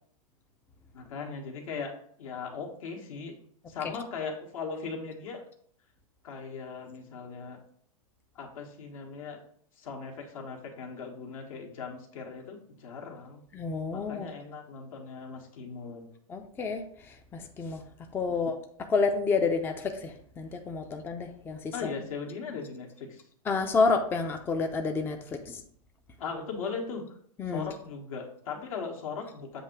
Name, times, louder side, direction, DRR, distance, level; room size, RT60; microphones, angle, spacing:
voice 1, 0.9-3.4 3.7-5.5 6.2-7.6 8.3-9.4 9.8-13.4 13.9-16.1 21.7-23.2 26.2-27.0 27.5-29.6, left 5 dB, 70° left, 1 dB, 1.5 m, -38 dB
voice 2, 13.5-14.3 16.3-17.9 18.1-21.9 23.4-25.6 27.4-27.7, left 4 dB, 10° left, 4 dB, 0.5 m, -30 dB
7.8 x 2.7 x 4.5 m, 0.62 s
hypercardioid pair, 130°, 18 cm